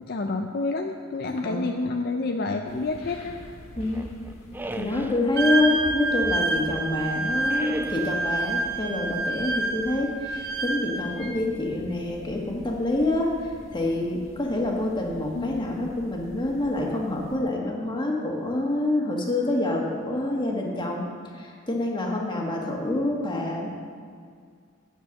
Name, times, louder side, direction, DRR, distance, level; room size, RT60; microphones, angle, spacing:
voice 1, 0.1-3.4 15.3-15.9, left 3 dB, 50° left, 4 dB, 0.5 m, -29 dB
voice 2, 1.3-1.7 3.8-4.0 4.7-21.1 21.3-23.8, left 2 dB, 25° left, -1 dB, 1.6 m, -27 dB
sound 1, 2.6-17.4, left 1 dB, 80° left, 1.6 m, -48 dB
sound 2, 3.8-5.2 5.8-6.9 7.5-8.3, right 1 dB, 10° right, 0.3 m, -38 dB
Wind instrument woodwind instrument, 5.4-11.3, right 2 dB, 50° right, 0.9 m, -28 dB
8.6 x 8.5 x 6.5 m, 2.1 s
head